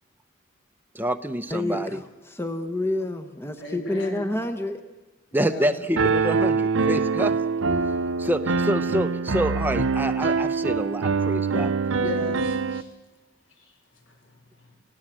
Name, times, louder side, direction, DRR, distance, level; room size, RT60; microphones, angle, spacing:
voice 1, 0.9-2.0 5.3-7.4 8.2-11.7, right 1 dB, 10° right, 7 dB, 0.8 m, -27 dB
voice 2, 1.5-4.9, left 1 dB, 10° left, 7 dB, 1.0 m, -29 dB
voice 3, 3.6-4.3 5.3-5.8 12.0-12.9 13.6-13.7 14.1-14.7, left 2 dB, 70° left, 3 dB, 5.3 m, -37 dB
Piano, 6.0-12.8, right 4 dB, 80° right, 0.8 m, -24 dB
28.5 x 16.5 x 7.6 m, 1.2 s
head